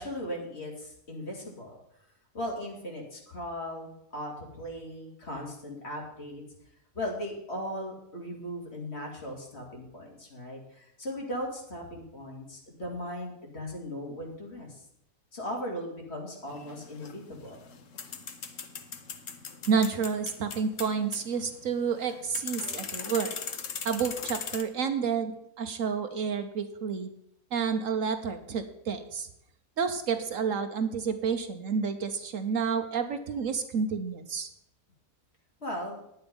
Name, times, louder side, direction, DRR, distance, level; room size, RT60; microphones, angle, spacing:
voice 1, 0.0-1.8 2.3-6.4 6.9-14.8 15.3-17.6 35.6-36.0, equal, 45° left, -1 dB, 2.8 m, -38 dB
sound 1, 16.5-24.6, left 6 dB, 60° left, 1.3 m, -39 dB
voice 2, 19.7-23.4 23.8-27.1 27.5-29.3 29.8-34.5, right 6 dB, 65° right, 8 dB, 1.1 m, -30 dB
10.5 x 8.8 x 5.3 m, 0.76 s
omnidirectional pair, 1.6 m